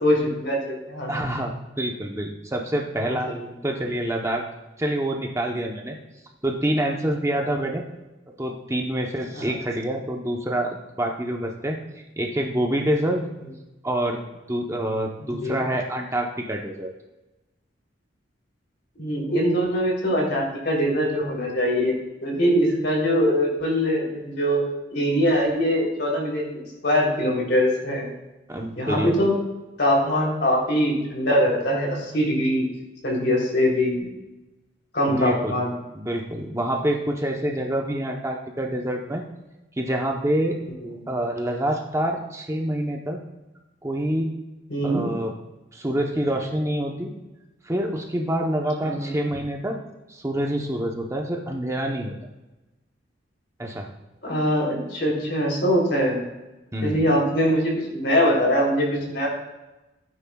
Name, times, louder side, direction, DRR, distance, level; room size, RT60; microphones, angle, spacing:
voice 1, 0.0-1.1 3.3-3.4 9.3-9.4 15.2-15.6 19.0-21.9 22.2-24.6 24.9-28.1 28.8-29.3 29.8-32.7 33.0-34.1 34.9-35.7 44.7-45.0 48.8-49.2 54.2-56.2 56.8-59.3, equal, 60° left, -2 dB, 3.3 m, -22 dB
voice 2, 1.1-3.3 3.6-4.4 4.8-6.0 6.4-7.8 8.3-11.8 12.2-13.3 13.8-14.2 14.5-16.9 28.5-29.1 35.1-35.6 35.9-39.2 39.8-40.6 41.1-43.2 43.8-44.3 44.8-45.3 45.7-47.1 47.6-49.8 50.1-52.1 53.6-53.9 56.7-57.1, right 1 dB, 15° right, 1 dB, 0.8 m, -26 dB
15.5 x 9.3 x 2.3 m, 1.0 s
head